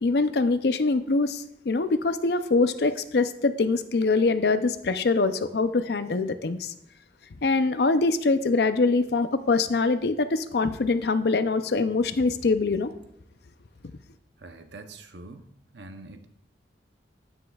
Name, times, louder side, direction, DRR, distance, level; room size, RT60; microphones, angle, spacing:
voice 1, 0.0-6.7 7.4-12.9, left 3 dB, 60° left, 11 dB, 0.5 m, -24 dB
voice 2, 14.4-15.4 15.7-16.3, right 2 dB, 75° right, 7 dB, 0.8 m, -44 dB
9.7 x 9.5 x 2.3 m, 0.76 s
head